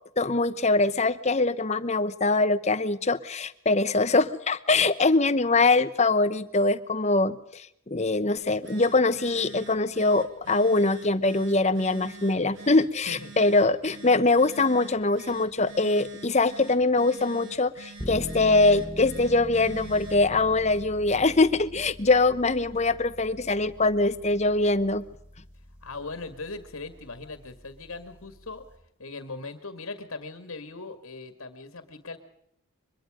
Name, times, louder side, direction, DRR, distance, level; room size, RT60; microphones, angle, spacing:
voice 1, 0.2-25.0, left 3 dB, 30° left, 13 dB, 0.9 m, -23 dB
Telephone, 8.4-20.3, right 4 dB, 55° right, 3.5 m, -47 dB
sound 1, 18.0-28.7, equal, 5° right, 4.0 m, -43 dB
voice 2, 25.8-28.7 29.0-32.2, left 3 dB, 70° left, 8 dB, 2.1 m, -39 dB
24.0 x 22.0 x 5.1 m, 0.76 s
head